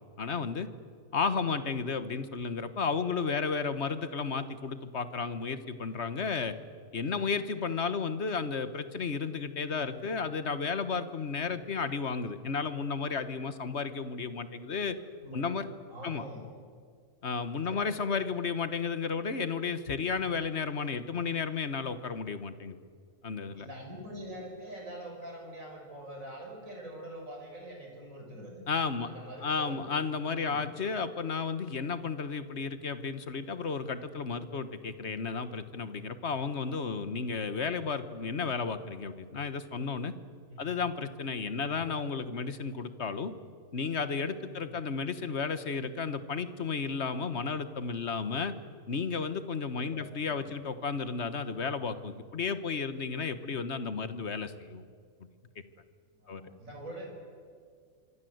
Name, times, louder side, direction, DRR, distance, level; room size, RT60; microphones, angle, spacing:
voice 1, 0.2-0.7 1.1-6.6 6.9-15.0 15.3-15.7 16.0-16.2 17.2-22.8 23.2-23.7 28.7-29.1 29.4-40.1 40.6-43.3 43.7-48.5 48.9-54.8 56.3-56.4, left 5 dB, 45° left, 11 dB, 1.5 m, -33 dB
voice 2, 15.2-15.6 15.9-16.5 17.7-17.9 23.5-28.6 29.0-29.8 30.3-30.6 40.5-40.8 41.6-41.8 44.5-44.7 49.7-50.4 56.1-57.1, right 1 dB, 55° right, 1 dB, 6.0 m, -45 dB
25.5 x 25.5 x 8.0 m, 2.1 s
omnidirectional pair, 1.7 m